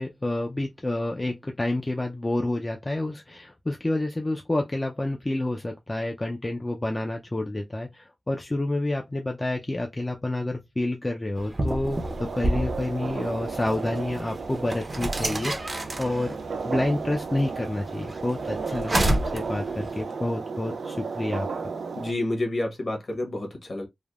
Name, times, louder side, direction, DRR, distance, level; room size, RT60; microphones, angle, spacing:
voice 1, 0.0-16.4 16.6-21.5, left 2 dB, 25° left, 0.4 m, -29 dB
sound 1, 11.4-20.0, right 1 dB, 40° right, 0.7 m, -31 dB
sound 2, 11.9-22.1, right 4 dB, 85° right, 0.4 m, -34 dB
voice 2, 21.9-23.9, left 1 dB, 55° left, 1.2 m, -29 dB
3.3 x 2.1 x 2.3 m
wide cardioid pair, 85°, 0 cm